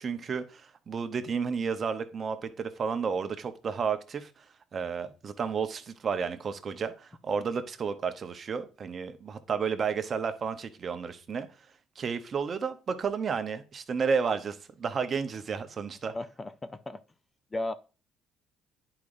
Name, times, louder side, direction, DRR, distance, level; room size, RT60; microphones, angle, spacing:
voice 1, 0.0-4.4 4.7-11.5 12.0-16.1, right 6 dB, 40° right, 0.8 m, -32 dB
voice 2, 16.1-17.0 17.5-17.7, left 1 dB, 20° left, 0.5 m, -35 dB
10.5 x 4.9 x 2.6 m
cardioid pair, 100°, 0 cm